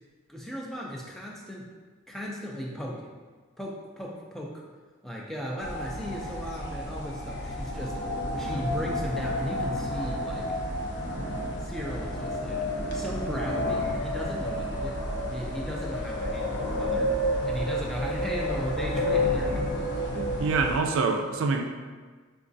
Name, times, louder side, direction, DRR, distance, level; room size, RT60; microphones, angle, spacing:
voice 1, 0.3-1.7 2.1-3.1 3.6-4.6 5.0-8.0 8.3-10.5 11.6-12.7 12.9-15.1 15.3-19.8 20.1-20.3, equal, ahead, -3 dB, 0.3 m, -36 dB
sound 1, 5.6-20.8, left 1 dB, 55° left, 0.5 m, -30 dB
voice 2, 20.4-21.7, right 4 dB, 80° right, 4 dB, 0.3 m, -25 dB
4.6 x 2.3 x 2.5 m, 1.4 s
head